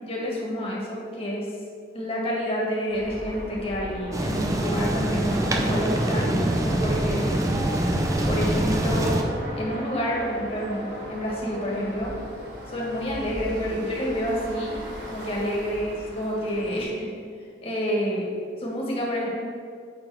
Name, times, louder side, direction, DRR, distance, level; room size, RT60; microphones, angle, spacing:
voice 1, 0.0-1.5 1.9-7.4 8.3-9.1 9.6-12.1 12.7-14.7 15.1-17.1 17.6-18.3 18.6-19.3, equal, 30° left, -4 dB, 1.6 m, -28 dB
sound 1, 2.9-16.8, equal, 60° right, 2.1 m, -37 dB
sound 2, 4.1-9.2, right 1 dB, 15° right, 0.5 m, -25 dB
8.9 x 3.4 x 6.1 m, 2.1 s
head